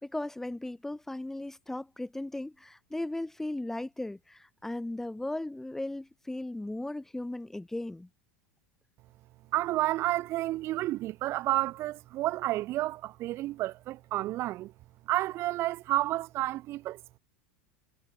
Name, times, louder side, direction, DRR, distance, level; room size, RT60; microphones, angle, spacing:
voice 1, 0.0-8.1, left 1 dB, 5° left, 1.7 m, -37 dB
voice 2, 9.5-14.7 15.1-17.2, right 16 dB, 45° right, 2.0 m, -30 dB
hypercardioid pair, 95°, 6 cm